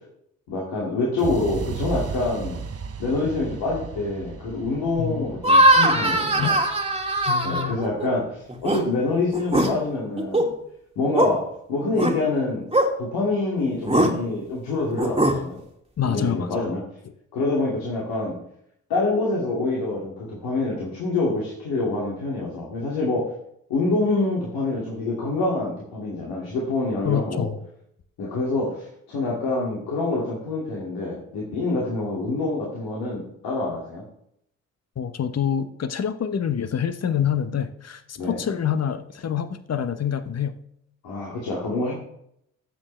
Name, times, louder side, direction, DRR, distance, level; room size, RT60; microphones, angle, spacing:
voice 1, 0.5-2.6 3.0-6.6 7.4-10.5 11.0-12.7 13.0-15.6 16.0-16.8 17.3-18.4 18.9-23.3 23.7-27.5 28.2-34.0 38.2-38.4 41.0-41.9, left 2 dB, 70° left, -4 dB, 2.4 m, -26 dB
sound 1, 1.2-9.1, right 6 dB, 40° right, 1.1 m, -36 dB
voice 2, 5.0-5.4 6.4-6.5 7.3-7.9 16.0-16.5 27.0-27.6 35.0-40.6, left 8 dB, 40° left, 11 dB, 1.1 m, -26 dB
sound 2, 5.4-8.1 8.5-8.8 9.3-9.7 10.2-10.5 11.2-11.3 12.0-12.1 12.7-12.9 13.9-14.1 15.0-15.4, right 1 dB, 15° right, 2.1 m, -20 dB
13.0 x 7.6 x 3.3 m, 0.73 s
hypercardioid pair, 45°, 38 cm